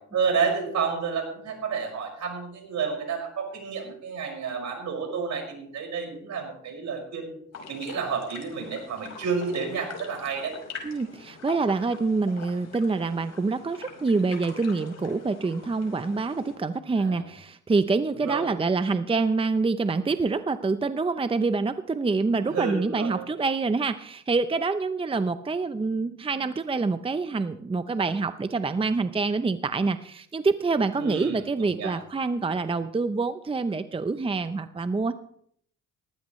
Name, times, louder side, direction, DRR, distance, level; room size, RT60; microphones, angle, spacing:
voice 1, 0.1-7.4 7.7-10.6 17.0-17.2 18.1-18.5 22.5-23.3 30.9-31.9, right 5 dB, 65° right, 1 dB, 5.8 m, -30 dB
sound 1, 7.5-16.6, left 5 dB, 60° left, 5.0 m, -44 dB
voice 2, 10.8-35.1, right 4 dB, 20° right, 11 dB, 0.7 m, -26 dB
18.5 x 15.0 x 3.2 m, 0.66 s
cardioid pair, 90°, 30 cm